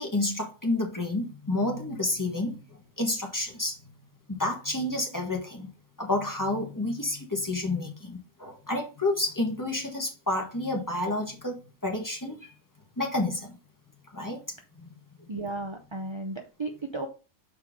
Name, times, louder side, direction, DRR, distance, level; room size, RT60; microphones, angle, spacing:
voice 1, 0.0-3.8 4.3-5.7 6.0-12.5 13.0-13.5 14.1-14.4 14.8-14.9 15.2-15.3, left 2 dB, 15° left, 1.4 m, -30 dB
voice 2, 15.3-17.1, right 2 dB, 35° right, 0.5 m, -34 dB
6.6 x 4.5 x 3.7 m
omnidirectional pair, 1.6 m